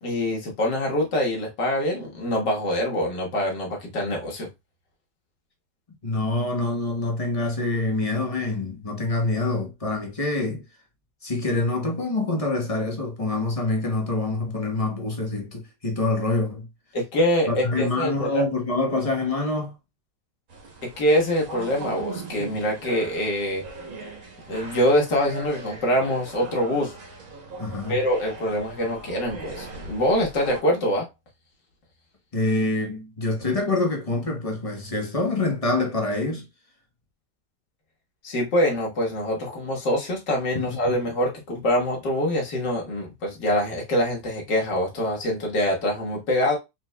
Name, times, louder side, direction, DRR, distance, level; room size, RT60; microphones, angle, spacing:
voice 1, 0.0-4.5 16.9-18.4 21.0-23.6 24.5-26.9 27.9-31.1 38.2-46.6, equal, 75° left, 2.1 m, -24 dB
voice 2, 6.0-10.6 11.2-16.7 17.5-19.7 27.6-28.0 32.3-36.5 40.5-40.9, left 2 dB, 25° left, 0.9 m, -26 dB
sound 1, 20.5-30.6, right 3 dB, 50° right, 1.5 m, -39 dB
4.4 x 4.2 x 2.2 m
omnidirectional pair, 1.9 m